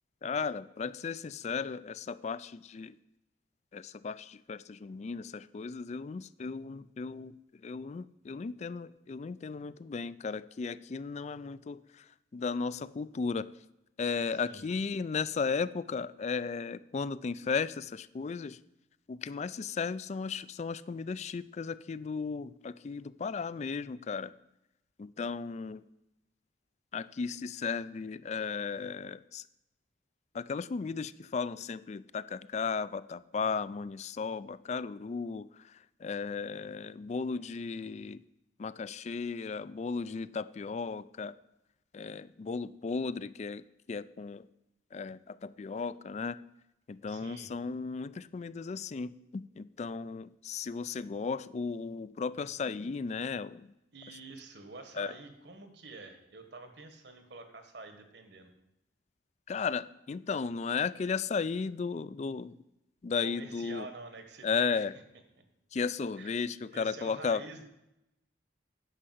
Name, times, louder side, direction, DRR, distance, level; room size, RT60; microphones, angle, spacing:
voice 1, 0.2-2.9 3.7-7.4 7.6-13.5 14.0-18.6 19.1-24.3 25.0-25.8 26.9-29.4 30.3-38.2 38.6-41.3 41.9-44.5 44.9-46.4 46.9-53.7 55.0-55.1 59.5-62.6 63.0-63.9 64.4-64.9 65.7-67.4, left 5 dB, 40° left, 17 dB, 0.3 m, -35 dB
voice 2, 14.3-14.7 47.1-47.5 53.9-58.5 63.2-64.9 65.3-65.4 66.2-66.3 66.7-67.6, right 3 dB, 65° right, 7 dB, 1.5 m, -47 dB
9.9 x 5.6 x 7.7 m, 0.88 s
head